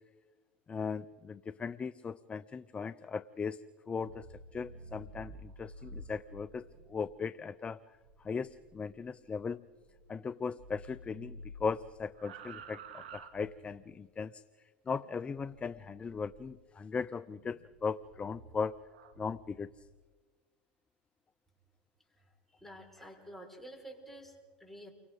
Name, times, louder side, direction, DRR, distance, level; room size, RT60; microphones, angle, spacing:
voice 1, 0.7-7.8 8.2-9.6 10.1-14.4 14.9-18.8 19.2-19.7, left 5 dB, 20° left, 16 dB, 0.5 m, -38 dB
sound 1, 3.8-10.3 10.6-14.0 15.4-16.6 17.3-19.9, right 2 dB, 85° right, 2.1 m, -52 dB
voice 2, 22.2-24.9, right 1 dB, 5° left, 0 dB, 5.7 m, -50 dB
30.0 x 24.5 x 4.0 m, 1.4 s
hypercardioid pair, 100°, 5 cm